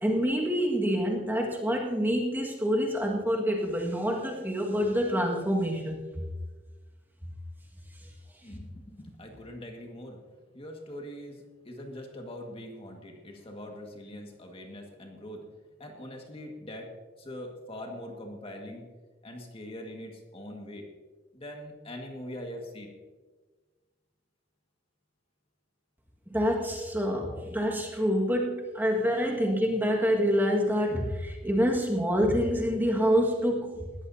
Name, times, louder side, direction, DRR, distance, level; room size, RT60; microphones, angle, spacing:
voice 1, 0.0-6.0 26.3-33.8, equal, 10° right, -1 dB, 1.8 m, -27 dB
voice 2, 8.4-10.2 10.5-18.9 19.2-20.9 21.3-22.9 27.2-27.4 29.4-29.6, left 1 dB, 30° left, 2 dB, 1.8 m, -43 dB
20.0 x 14.5 x 2.8 m, 1.3 s
head